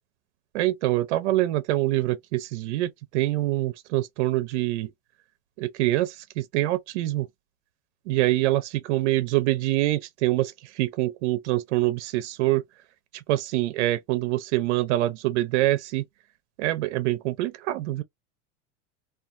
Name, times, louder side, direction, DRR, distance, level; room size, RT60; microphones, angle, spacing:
voice 1, 0.5-4.9 5.6-7.3 8.1-12.6 13.1-16.0 16.6-18.0, right 16 dB, 75° right, 0.5 m, -25 dB
3.0 x 2.4 x 2.4 m
supercardioid pair, 120°, 34 cm